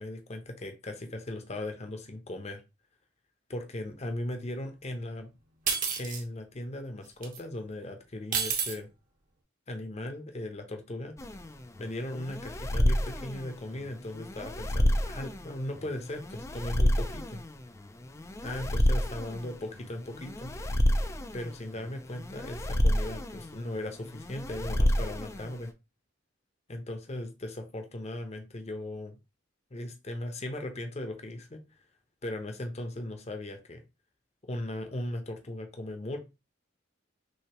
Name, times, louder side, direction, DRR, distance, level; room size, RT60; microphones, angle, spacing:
voice 1, 0.0-2.6 3.5-5.3 6.0-8.9 9.7-11.1 11.8-17.4 18.4-20.5 21.3-25.7 26.7-29.2 29.7-31.6 32.2-33.8 34.4-36.2, left 1 dB, 35° left, 0.8 m, -38 dB
sound 1, 5.7-6.2 7.2-7.4 8.3-8.7, right 6 dB, 45° right, 1.1 m, -29 dB
sound 2, 11.2-25.7, left 1 dB, 15° left, 0.4 m, -29 dB
6.4 x 2.8 x 2.9 m
head